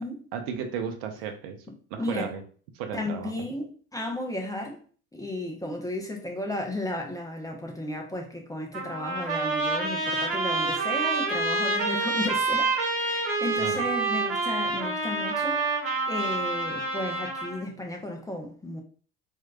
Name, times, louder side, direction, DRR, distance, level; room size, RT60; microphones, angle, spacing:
voice 1, 0.3-1.6 1.9-2.4 2.7-3.3 13.6-13.8, right 7 dB, 50° right, 0.7 m, -34 dB
voice 2, 2.0-2.3 2.9-4.8 5.1-15.6 16.1-18.8, left 1 dB, 10° left, 0.6 m, -34 dB
Trumpet, 8.7-17.7, right 3 dB, 30° right, 1.7 m, -27 dB
4.4 x 2.7 x 2.3 m
figure-of-eight pair, 65°, 44 cm